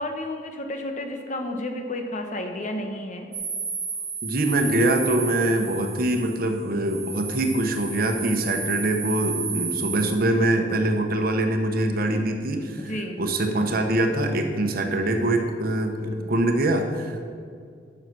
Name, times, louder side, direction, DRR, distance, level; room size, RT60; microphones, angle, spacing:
voice 1, 0.0-3.3 12.8-13.2 16.0-16.2, left 1 dB, 45° left, 4 dB, 1.1 m, -31 dB
sound 1, 3.3-10.1, right 5 dB, 30° right, 2.4 m, -32 dB
voice 2, 4.2-17.2, right 1 dB, 55° right, 5 dB, 1.0 m, -24 dB
9.6 x 6.4 x 6.2 m, 2.2 s
head